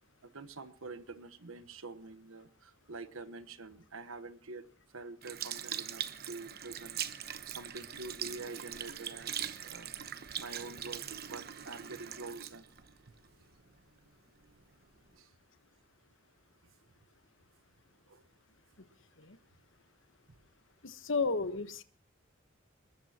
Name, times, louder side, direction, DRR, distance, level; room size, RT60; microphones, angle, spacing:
voice 1, 0.2-4.7 4.9-9.9 10.4-12.7 15.1-15.3 18.1-18.2 20.3-20.4, right 3 dB, 90° right, 12 dB, 1.3 m, -47 dB
Sink (filling or washing) / Liquid, 5.2-13.8 14.4-14.5, right 9 dB, 50° right, 1.0 m, -41 dB
voice 2, 20.8-21.8, left 4 dB, 65° left, 10 dB, 1.3 m, -33 dB
21.5 x 20.5 x 3.0 m, 0.41 s
head